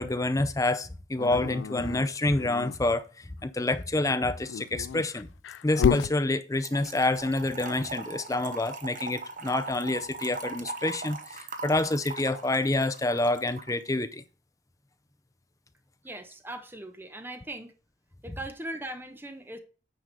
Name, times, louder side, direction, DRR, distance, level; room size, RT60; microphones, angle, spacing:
voice 1, 0.0-5.3 5.6-14.2, left 2 dB, 20° left, 0.5 m, -28 dB
Dog, 1.2-2.8 4.3-6.2, left 7 dB, 80° left, 0.3 m, -30 dB
Trickle dribble / Fill (with liquid), 6.6-13.7, right 3 dB, 45° right, 1.0 m, -40 dB
voice 2, 16.0-17.7 18.2-19.6, right 1 dB, 10° right, 0.9 m, -39 dB
9.2 x 5.0 x 4.0 m
head